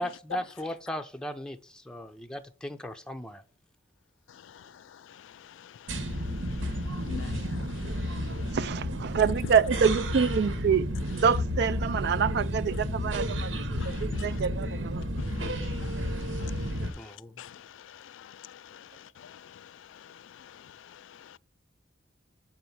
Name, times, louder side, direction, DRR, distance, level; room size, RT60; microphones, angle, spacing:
voice 1, 0.0-3.4 17.0-17.4, equal, 5° left, 0.5 m, -37 dB
voice 2, 4.4-8.6 13.8-14.3 15.2-21.4, left 8 dB, 80° left, 0.3 m, -48 dB
sound 1, 5.9-16.9, equal, 80° right, 1.2 m, -32 dB
voice 3, 8.5-15.0, right 6 dB, 60° right, 0.4 m, -27 dB
7.7 x 4.5 x 5.4 m
head